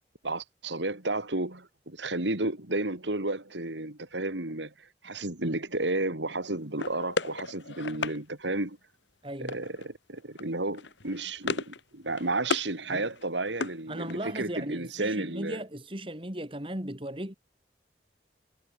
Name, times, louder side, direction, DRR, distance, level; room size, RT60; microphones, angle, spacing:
voice 1, 0.2-8.8 9.4-15.6, right 2 dB, 85° right, 3.4 m, -32 dB
sound 1, 6.8-8.2 9.5-9.9 10.2-10.4 10.7-11.8 12.1-12.7 13.1-14.4, left 3 dB, 90° left, 2.0 m, -34 dB
voice 2, 9.2-9.6 12.9-13.1 13.9-17.3, right 1 dB, 30° right, 3.2 m, -37 dB
head